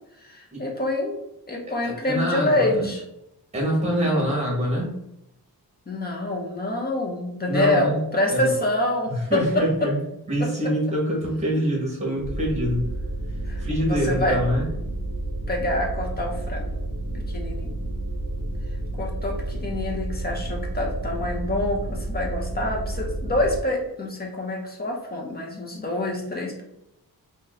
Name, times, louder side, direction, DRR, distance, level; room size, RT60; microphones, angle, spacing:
voice 1, 0.2-1.2 1.5-3.0 3.9-4.1 5.9-9.9 10.4-10.5 13.5-14.4 15.5-16.7 17.1-17.7 19.0-26.6, left 1 dB, 25° left, 0 dB, 0.7 m, -26 dB
voice 2, 1.8-2.9 3.5-4.9 7.5-8.0 8.3-8.5 9.1-10.0 10.3-12.9 13.6-14.6, equal, 15° right, -3 dB, 1.3 m, -25 dB
sound 1, 12.2-23.6, right 1 dB, 55° right, 0.5 m, -30 dB
2.9 x 2.7 x 3.9 m, 0.82 s
wide cardioid pair, 175°, 38 cm